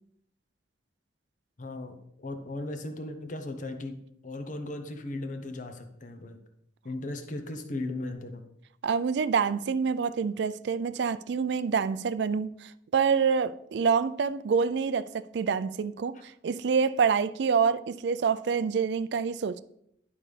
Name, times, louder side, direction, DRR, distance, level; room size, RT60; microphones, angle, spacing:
voice 1, 1.6-6.4 6.8-8.4 16.1-16.2, left 2 dB, 45° left, 0.8 m, -37 dB
voice 2, 8.8-16.1 16.4-19.6, right 6 dB, 65° right, 0.4 m, -27 dB
11.0 x 5.4 x 3.3 m
head